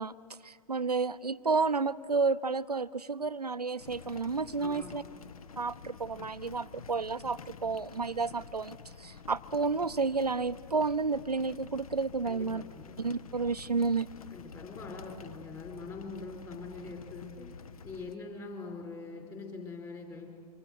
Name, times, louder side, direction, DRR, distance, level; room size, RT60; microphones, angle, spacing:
voice 1, 0.0-5.0 5.6-12.6 13.0-14.1, right 4 dB, 90° right, 13 dB, 0.5 m, -31 dB
sound 1, 3.8-18.2, left 6 dB, 65° left, 0.9 m, -49 dB
voice 2, 4.6-5.1 12.2-13.1 14.3-17.5 17.8-20.3, left 3 dB, 15° left, 1 dB, 4.3 m, -43 dB
25.5 x 24.0 x 6.5 m, 2.1 s
figure-of-eight pair, 105°, 20 cm